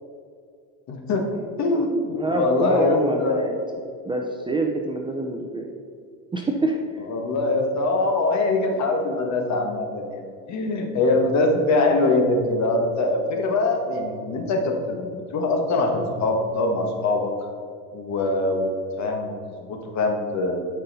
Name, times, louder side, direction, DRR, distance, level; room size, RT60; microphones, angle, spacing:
voice 1, 0.9-1.3 1.6-3.4 7.1-17.3 17.9-18.7 19.0-19.3 19.6-20.6, left 2 dB, 40° left, 3 dB, 1.6 m, -23 dB
voice 2, 2.2-3.5 4.0-5.7 6.3-6.8, right 1 dB, 10° right, 1 dB, 0.6 m, -25 dB
11.5 x 5.5 x 4.2 m, 2.2 s
supercardioid pair, 125°, 41 cm